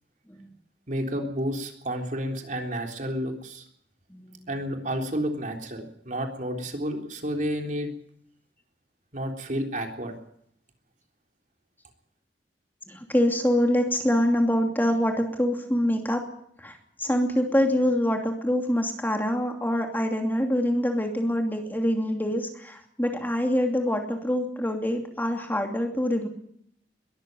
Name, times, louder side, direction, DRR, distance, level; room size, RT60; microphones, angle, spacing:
voice 1, 0.9-3.7 4.5-7.9 9.1-10.1, equal, 45° right, 3 dB, 3.7 m, -31 dB
voice 2, 4.1-4.5 12.9-16.2 16.6-26.3, equal, 10° left, 3 dB, 2.7 m, -25 dB
22.0 x 13.5 x 9.1 m, 0.69 s
head